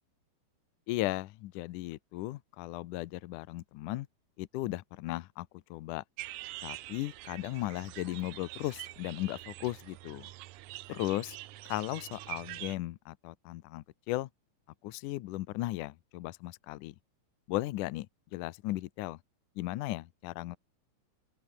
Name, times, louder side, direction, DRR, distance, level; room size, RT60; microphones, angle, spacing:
voice 1, 0.9-4.1 4.4-6.0 6.6-10.3 10.9-11.4 11.7-14.3 14.8-17.0 17.5-18.1 18.3-19.2 19.6-20.6, left 17 dB, 80° left, 1.9 m, -36 dB
sound 1, 6.2-12.8, right 17 dB, 85° right, 1.7 m, -45 dB
open air
omnidirectional pair, 4.5 m